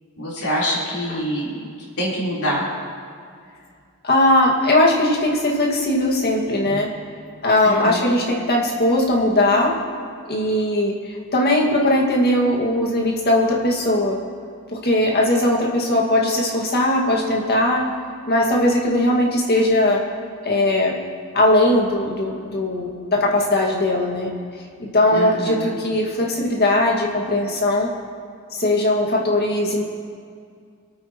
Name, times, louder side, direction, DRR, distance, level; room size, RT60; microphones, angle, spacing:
voice 1, 0.2-1.7 2.0-2.6 7.6-8.1 25.1-25.8, equal, 90° left, -6 dB, 4.1 m, -25 dB
voice 2, 4.0-6.9 7.4-9.7 10.3-14.2 14.7-17.9 18.3-20.0 20.4-20.9 21.3-24.3 24.8-27.9 28.6-29.8, left 1 dB, 45° left, -1 dB, 2.1 m, -19 dB
26.0 x 9.3 x 3.1 m, 2.2 s
head